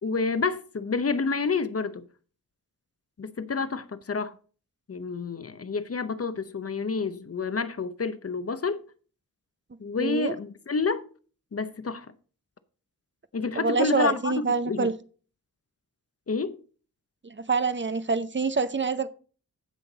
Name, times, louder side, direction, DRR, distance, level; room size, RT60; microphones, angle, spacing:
voice 1, 0.0-2.0 3.2-4.4 4.9-8.8 9.8-11.1 11.5-12.1 13.3-14.9 16.3-16.6, left 4 dB, 40° left, 0.7 m, -29 dB
voice 2, 10.0-10.3 13.6-14.9 17.2-19.1, right 4 dB, 35° right, 0.6 m, -26 dB
15.5 x 5.8 x 3.9 m
wide cardioid pair, 130°, 35 cm